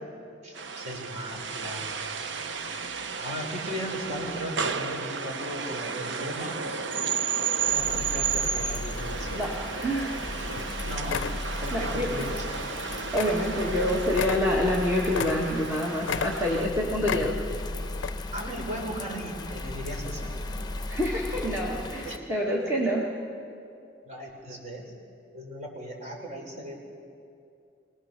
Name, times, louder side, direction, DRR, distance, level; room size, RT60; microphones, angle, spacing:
voice 1, 0.4-1.9 3.2-6.9 7.6-9.4 10.8-11.2 11.6-12.6 18.3-20.5 22.0-22.3 22.6-22.7 24.1-24.9 25.3-26.8, equal, 40° right, 0 dB, 3.8 m, -37 dB
sound 1, 0.6-16.7, right 6 dB, 70° right, 0.8 m, -33 dB
Bird vocalization bird call bird song / Rain, 7.5-22.2, left 2 dB, 25° left, 0.9 m, -36 dB
voice 2, 9.3-10.2 11.7-12.1 13.1-17.4 20.9-23.0, left 1 dB, 15° right, -3 dB, 1.5 m, -27 dB
sound 2, 10.6-10.7 11.0-11.4 12.2-12.4 12.7-12.8 13.2-13.4 13.7-13.8 14.1-15.7 16.0-16.7 17.0-17.6 18.0-18.1, left 7 dB, 90° left, 0.4 m, -33 dB
23.5 x 19.0 x 6.6 m, 2.5 s
head